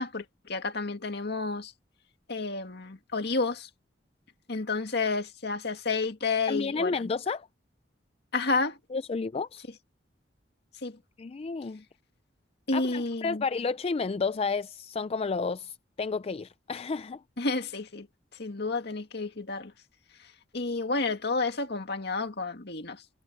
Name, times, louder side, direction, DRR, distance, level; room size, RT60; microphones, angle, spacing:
voice 1, 0.0-1.7 2.3-3.7 4.5-7.0 8.3-8.8 10.8-11.0 12.7-13.4 17.4-18.1 18.4-19.7 20.2-23.0, left 3 dB, 65° left, 2.1 m, -30 dB
voice 2, 6.5-7.5 8.9-9.6 11.2-11.8 12.7-17.2, left 4 dB, 35° left, 0.4 m, -31 dB
head